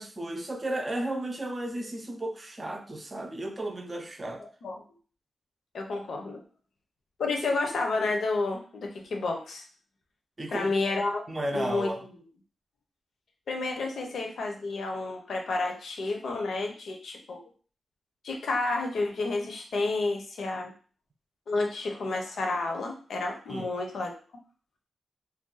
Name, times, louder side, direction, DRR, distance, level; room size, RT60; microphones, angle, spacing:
voice 1, 0.0-4.4 10.4-10.7 11.3-12.0 23.5-23.7, right 1 dB, 25° right, 3 dB, 0.5 m, -34 dB
voice 2, 5.7-6.4 7.2-9.6 10.5-11.2 11.5-11.9 13.5-17.4 18.2-20.7 21.5-24.1, left 3 dB, 80° left, 2 dB, 0.6 m, -30 dB
2.6 x 2.2 x 3.8 m, 0.42 s
wide cardioid pair, 105°, 0 cm